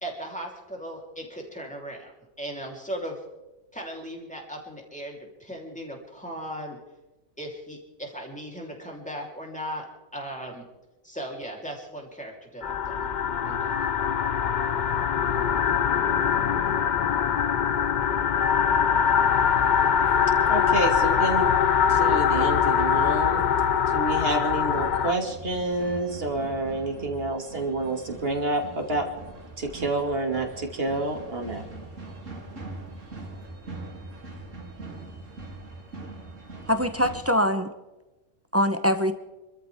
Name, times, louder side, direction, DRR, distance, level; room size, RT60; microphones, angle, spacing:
voice 1, 0.0-2.1 2.4-3.2 3.7-6.8 7.4-9.9 10.1-10.7 11.0-13.2 13.4-13.8, equal, 5° left, -1 dB, 3.6 m, -37 dB
sound 1, 12.6-25.1, left 7 dB, 50° left, 0.5 m, -23 dB
voice 2, 20.5-21.5 21.9-23.4 23.9-29.1 29.6-31.6, right 2 dB, 45° right, 2 dB, 2.8 m, -28 dB
sound 2, 24.7-37.2, right 3 dB, 60° right, 3.2 m, -42 dB
voice 3, 36.7-37.7 38.5-39.1, equal, 15° right, 8 dB, 0.7 m, -23 dB
27.5 x 13.5 x 3.6 m, 1.1 s
omnidirectional pair, 1.5 m